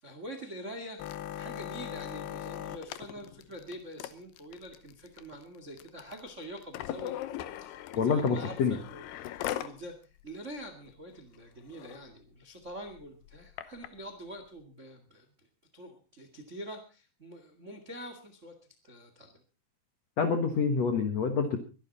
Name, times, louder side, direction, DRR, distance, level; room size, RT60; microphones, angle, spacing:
voice 1, 0.0-7.2 7.6-15.5 15.7-18.5 18.8-19.4, equal, 75° right, 7 dB, 0.6 m, -45 dB
sound 1, 1.0-9.8 10.2-10.3 10.6-10.9 11.3-11.4 11.7-12.0 12.6-13.9 14.6-14.7, left 12 dB, 75° left, 2.7 m, -40 dB
voice 2, 7.9-8.8 20.2-21.6, left 5 dB, 90° left, 7 dB, 1.5 m, -27 dB
23.0 x 11.5 x 4.1 m, 0.33 s
omnidirectional pair, 5.5 m